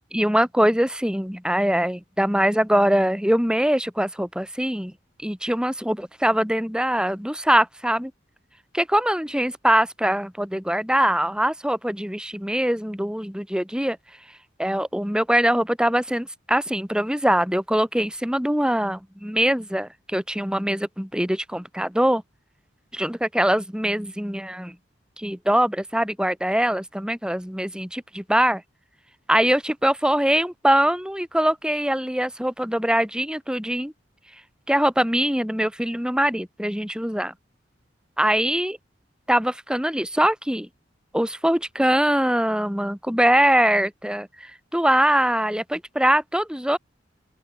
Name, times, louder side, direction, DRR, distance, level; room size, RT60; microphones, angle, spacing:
voice 1, 0.1-4.9 5.2-8.1 8.7-14.0 14.6-22.2 22.9-24.7 25.2-28.6 29.3-33.9 34.7-37.3 38.2-38.8 39.3-40.7 41.1-46.8, right 1 dB, 5° right, 3.7 m, -22 dB
open air
head